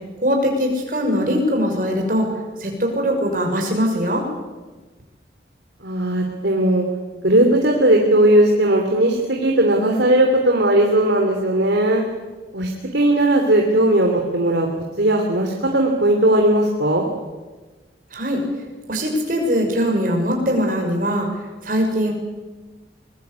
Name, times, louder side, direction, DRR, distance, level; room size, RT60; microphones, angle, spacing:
voice 1, 0.2-2.3 2.6-4.3 18.1-18.4 18.9-21.3 21.6-22.1, equal, 50° right, 2 dB, 6.4 m, -21 dB
voice 2, 5.8-6.8 7.2-12.0 12.5-14.7 15.0-17.1, right 1 dB, 80° right, 2 dB, 3.1 m, -17 dB
24.0 x 22.0 x 8.3 m, 1.3 s
head